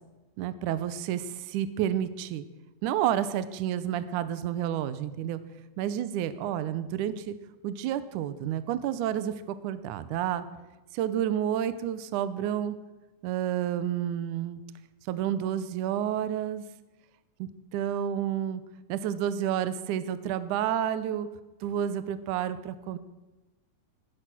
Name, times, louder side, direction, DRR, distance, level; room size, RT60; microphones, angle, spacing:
voice 1, 0.4-2.4 2.8-5.4 5.8-7.3 7.6-9.3 9.6-10.4 10.9-12.7 13.2-14.6 15.0-16.6 17.4-18.6 18.9-21.3 21.6-23.0, right 10 dB, 80° right, 13 dB, 1.8 m, -30 dB
16.0 x 13.0 x 6.1 m, 1.1 s
omnidirectional pair, 4.7 m